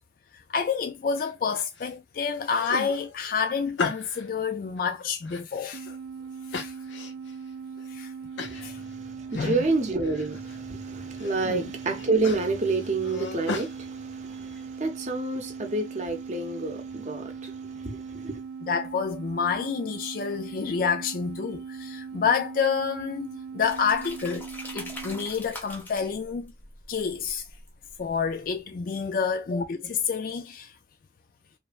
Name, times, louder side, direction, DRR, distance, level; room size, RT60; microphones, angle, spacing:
voice 1, 0.3-5.9 6.5-6.7 7.9-8.1 8.6-8.8 9.3-9.6 11.4-11.7 18.6-24.5 24.7-26.5 26.9-27.4 28.0-30.7, left 6 dB, 50° left, 0.3 m, -28 dB
sound 1, 1.2-1.9 2.3-4.3 4.8-6.0 6.5-7.3 7.8-7.9 8.4-8.7 9.0-9.7 10.0-10.6 11.0-11.5 11.8-13.7, left 4 dB, 85° left, 0.7 m, -37 dB
sound 2, 5.7-25.3, right 6 dB, 75° right, 0.4 m, -40 dB
voice 2, 8.4-18.4, right 3 dB, 40° right, 0.7 m, -29 dB
sound 3, 23.6-28.2, left 1 dB, 10° left, 0.6 m, -43 dB
3.1 x 2.1 x 2.4 m
head